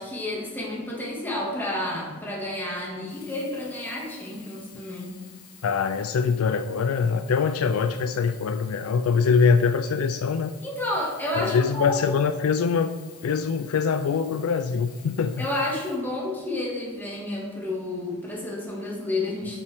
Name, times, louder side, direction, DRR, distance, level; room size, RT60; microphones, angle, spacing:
voice 1, 0.0-5.1 10.6-12.0 15.4-19.6, left 1 dB, 10° left, -4 dB, 1.8 m, -30 dB
Sink (filling or washing), 3.0-16.7 17.5-17.6, left 7 dB, 85° left, 1.4 m, -51 dB
voice 2, 5.6-10.5 11.3-12.9 13.2-15.4, left 5 dB, 70° left, 9 dB, 0.4 m, -23 dB
8.9 x 5.6 x 3.5 m, 1.4 s
head